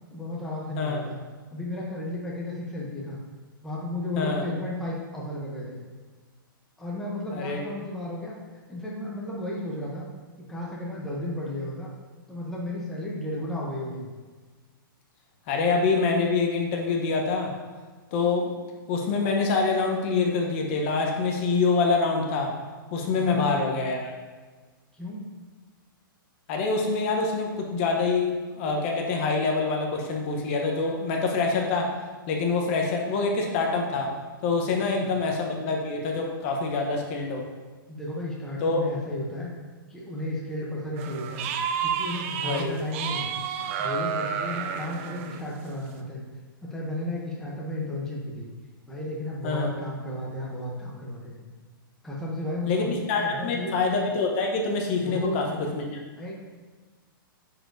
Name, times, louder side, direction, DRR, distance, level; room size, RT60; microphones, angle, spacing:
voice 1, 0.1-1.2 1.5-3.2 3.6-5.8 6.8-8.4 8.7-10.1 10.4-11.9 12.3-14.1 23.2-23.4 24.9-25.4 35.0-35.2 37.9-39.5 39.9-41.5 41.8-43.3 43.8-46.2 46.6-48.5 48.9-51.4 52.0-52.9 53.2-53.8 55.1-55.4 56.2-56.3, left 1 dB, 5° left, -5 dB, 0.7 m, -33 dB
voice 2, 15.5-17.5 18.1-18.5 18.9-22.5 22.9-24.1 26.5-31.9 32.3-34.1 34.4-37.4 38.6-38.8 42.4-42.7 49.4-49.7 52.7-55.4 55.7-56.0, left 4 dB, 35° left, 1 dB, 0.8 m, -25 dB
sound 1, 41.0-42.6 42.9-45.4, right 7 dB, 35° right, 0.4 m, -30 dB
9.3 x 4.3 x 2.6 m, 1.4 s
hypercardioid pair, 160°, 12 cm